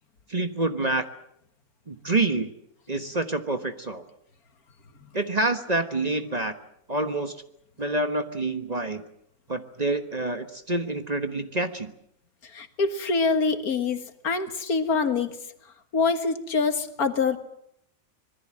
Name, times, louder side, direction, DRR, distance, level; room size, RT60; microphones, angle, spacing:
voice 1, 0.3-1.0 1.9-2.5 2.9-4.1 5.1-6.5 6.9-7.4 7.8-9.0 9.5-11.9, right 2 dB, 30° right, 8 dB, 1.2 m, -27 dB
voice 2, 12.4-15.4 15.9-17.4, left 4 dB, 80° left, 8 dB, 2.1 m, -25 dB
26.0 x 20.5 x 7.5 m, 0.74 s
omnidirectional pair, 1.5 m